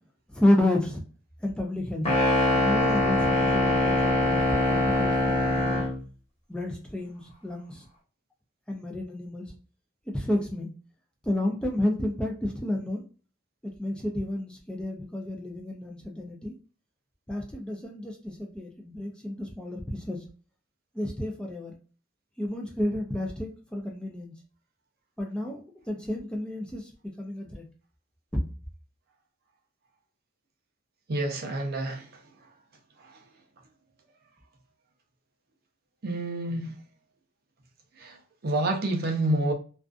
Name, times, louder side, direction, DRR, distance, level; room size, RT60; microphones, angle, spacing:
voice 1, 0.3-1.0 1.4-2.1 2.5-5.9 6.5-7.8 8.7-9.5 10.1-10.7 11.2-13.0 13.6-16.5 17.3-20.2 20.9-21.7 22.4-24.3 25.2-27.6, left 1 dB, 5° left, 0 dB, 0.4 m, -31 dB
sound 1, 2.0-6.0, left 1 dB, 30° left, 1.1 m, -23 dB
voice 2, 31.1-32.1 36.0-36.7 38.0-38.2 38.4-39.5, right 1 dB, 50° right, 4 dB, 0.5 m, -28 dB
2.4 x 2.4 x 2.3 m, 0.37 s
head